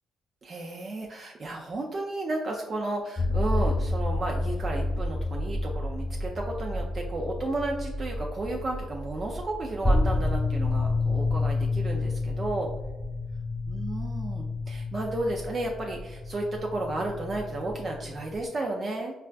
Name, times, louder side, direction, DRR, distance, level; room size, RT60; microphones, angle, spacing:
voice 1, 0.4-12.7 13.7-19.1, right 2 dB, 40° right, 0 dB, 0.4 m, -33 dB
sound 1, 3.2-18.4, left 2 dB, 5° left, 1.1 m, -30 dB
4.2 x 2.2 x 2.4 m, 1.1 s
cardioid pair, 90°, 0 cm